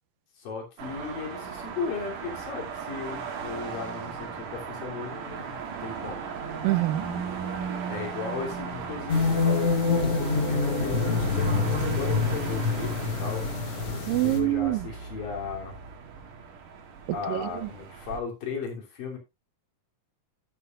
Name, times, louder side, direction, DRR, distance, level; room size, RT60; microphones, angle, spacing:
voice 1, 0.4-6.3 7.9-13.5 13.9-15.7 17.1-19.2, left 5 dB, 80° left, 4.9 m, -36 dB
sound 1, 0.8-18.2, right 6 dB, 70° right, 3.4 m, -37 dB
voice 2, 6.6-7.0 14.1-14.8 17.3-17.4, right 17 dB, 85° right, 2.5 m, -24 dB
sound 2, 9.1-14.4, left 4 dB, 50° left, 2.6 m, -26 dB
12.5 x 10.5 x 2.5 m
omnidirectional pair, 3.9 m